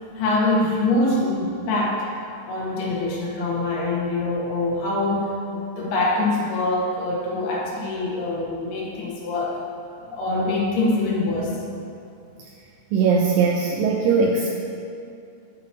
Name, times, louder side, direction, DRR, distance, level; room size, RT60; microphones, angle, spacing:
voice 1, 0.1-2.1 2.5-9.6 10.0-11.6, left 2 dB, 80° left, -3 dB, 3.3 m, -24 dB
voice 2, 12.9-14.5, right 5 dB, 85° right, 0 dB, 2.0 m, -20 dB
9.9 x 8.5 x 3.0 m, 2.6 s
omnidirectional pair, 4.5 m